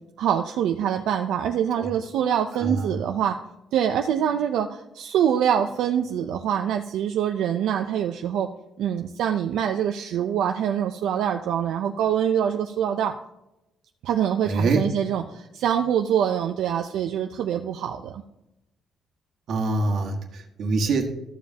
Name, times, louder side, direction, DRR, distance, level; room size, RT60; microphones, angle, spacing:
voice 1, 0.2-3.4 3.7-8.5 8.8-13.1 14.0-18.2, right 9 dB, 85° right, 5 dB, 0.5 m, -25 dB
voice 2, 14.4-14.9 19.5-21.1, right 3 dB, 60° right, 2 dB, 1.5 m, -24 dB
13.5 x 7.2 x 2.8 m, 0.91 s
cardioid pair, 135°, 0 cm